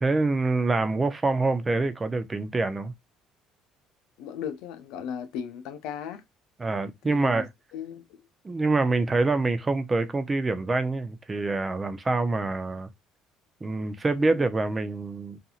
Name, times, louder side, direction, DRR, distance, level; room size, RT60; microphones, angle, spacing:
voice 1, 0.0-2.9 6.6-7.5 8.4-12.9 13.6-15.4, right 3 dB, 25° right, 0.5 m, -26 dB
voice 2, 4.2-6.2 7.0-7.4 7.7-8.2 14.2-14.4, left 8 dB, 80° left, 0.5 m, -36 dB
2.7 x 2.6 x 2.4 m
supercardioid pair, 75°, 0 cm